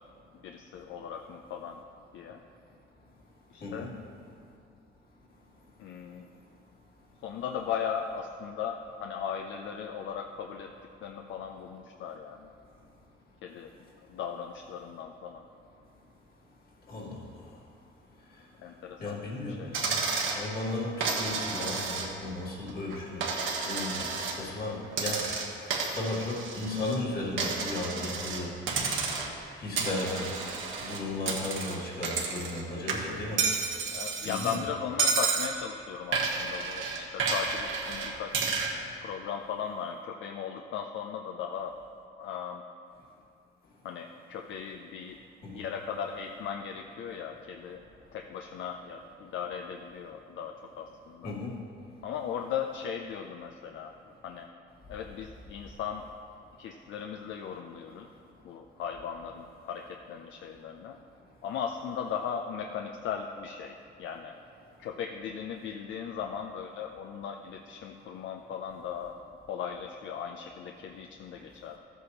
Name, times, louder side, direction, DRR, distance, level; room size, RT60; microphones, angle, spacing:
voice 1, 0.3-1.8 2.1-2.4 3.5-3.9 5.8-6.3 7.2-10.7 11.0-12.5 13.4-13.7 14.1-15.4 18.6-19.2 19.5-19.9 33.9-38.4 39.0-41.7 42.2-42.6 43.8-45.2 45.5-47.8 48.1-51.3 52.0-53.9 54.2-54.5 54.9-56.1 56.6-58.1 58.4-61.0 61.4-64.3 64.8-69.1 69.4-71.8, left 7 dB, 75° left, 3 dB, 0.5 m, -37 dB
voice 2, 3.6-3.9 16.9-17.2 19.0-19.6 19.8-20.0 20.3-23.3 23.6-25.3 25.9-28.5 29.6-30.4 30.8-33.5 34.2-34.6 45.4-45.6 51.2-51.5, left 2 dB, 50° left, -4 dB, 2.1 m, -35 dB
Coin (dropping), 19.7-20.4 21.0-22.3 22.7-24.4 24.9-27.0 27.4-28.4 28.7-29.4 29.8-32.6 32.9-34.6 35.0-35.5 36.1-38.7, right 5 dB, 80° right, 1.3 m, -31 dB
13.0 x 8.2 x 3.0 m, 2.5 s
cardioid pair, 90°, 20 cm